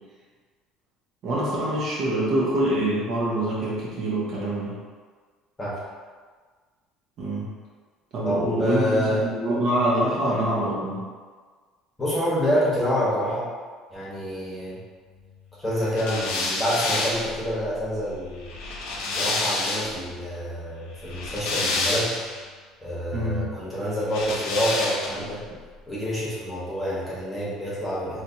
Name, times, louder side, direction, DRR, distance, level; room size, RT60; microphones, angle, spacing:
voice 1, 1.2-4.8 7.2-7.5 8.1-11.0 23.1-23.5, right 1 dB, 50° right, -6 dB, 0.9 m, -25 dB
voice 2, 8.2-9.2 12.0-13.5 13.9-14.8 15.6-18.5 19.1-22.2 22.8-25.4 25.9-28.2, equal, 10° left, -9 dB, 1.3 m, -27 dB
sound 1, 16.0-20.1 21.0-22.4 24.1-25.3, left 2 dB, 85° left, 0.6 m, -28 dB
3.3 x 2.9 x 2.8 m, 1.5 s
cardioid pair, 140°, 0 cm